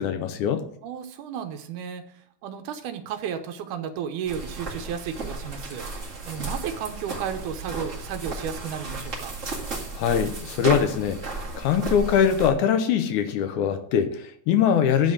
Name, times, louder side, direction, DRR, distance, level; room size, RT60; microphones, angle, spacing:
voice 1, 0.0-0.6 9.9-15.1, left 8 dB, 80° left, 8 dB, 2.2 m, -23 dB
voice 2, 0.8-2.1 2.4-9.3, right 8 dB, 80° right, 7 dB, 2.3 m, -33 dB
sound 1, 4.3-12.5, right 3 dB, 25° right, 2.1 m, -34 dB
10.5 x 4.0 x 7.3 m, 0.63 s
omnidirectional pair, 3.6 m